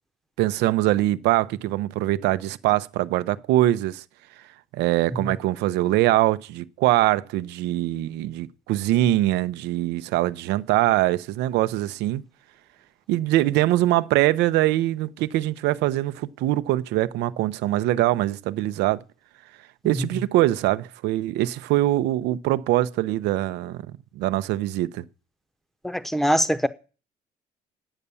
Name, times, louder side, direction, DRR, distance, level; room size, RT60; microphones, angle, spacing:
voice 1, 0.4-4.0 4.7-12.2 13.1-19.0 19.8-23.8 24.2-25.0, right 15 dB, 85° right, 0.7 m, -23 dB
voice 2, 25.8-26.7, equal, ahead, 0.8 m, -22 dB
9.9 x 8.4 x 6.9 m
cardioid pair, 110°, 17 cm